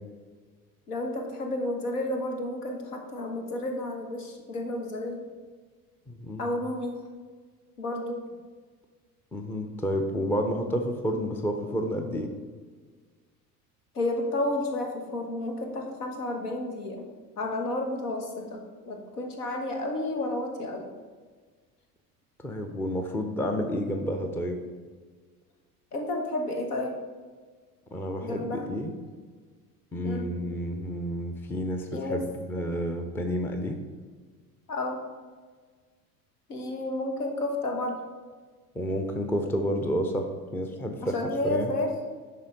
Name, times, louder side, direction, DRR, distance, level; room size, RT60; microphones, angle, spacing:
voice 1, 0.9-5.3 6.4-7.0 7.8-8.2 13.9-17.1 17.4-20.9 25.9-27.0 28.2-28.7 30.0-30.3 31.9-32.2 32.5-32.6 34.7-35.0 36.5-38.0 41.1-42.0, left 1 dB, 75° left, 3 dB, 1.2 m, -31 dB
voice 2, 6.1-6.5 9.3-12.3 22.4-24.6 27.9-28.9 29.9-33.8 38.8-41.2 41.4-41.7, equal, 5° left, 5 dB, 0.4 m, -30 dB
10.5 x 3.6 x 3.9 m, 1.5 s
figure-of-eight pair, 70°, 46 cm